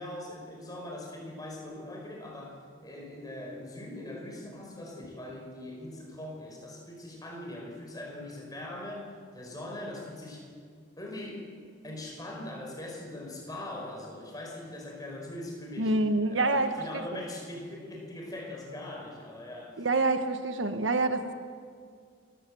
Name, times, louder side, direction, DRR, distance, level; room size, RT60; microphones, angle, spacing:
voice 1, 0.0-9.1 9.3-10.5 11.0-11.5 11.8-16.0 16.3-19.9, left 1 dB, 20° left, 0 dB, 5.0 m, -41 dB
voice 2, 15.8-16.7 19.8-21.3, right 2 dB, 70° right, 8 dB, 1.3 m, -26 dB
28.0 x 14.5 x 7.8 m, 2.1 s
head